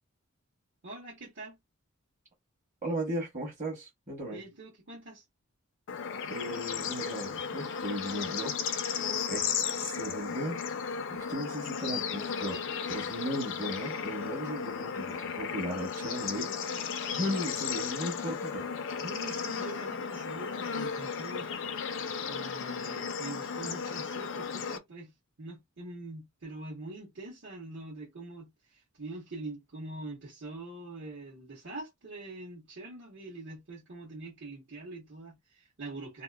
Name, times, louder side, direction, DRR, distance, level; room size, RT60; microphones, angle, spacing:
voice 1, 0.8-1.6 4.3-5.2 17.3-17.5 19.0-25.1 25.4-36.2, right 2 dB, 55° right, 1.2 m, -44 dB
voice 2, 2.8-4.4 6.3-8.5 8.9-10.6 11.1-12.6 12.9-16.5 17.1-18.7, equal, 35° right, 1.2 m, -36 dB
Bird / Insect / Frog, 5.9-24.8, left 6 dB, 60° left, 0.5 m, -35 dB
2.8 x 2.4 x 2.3 m
head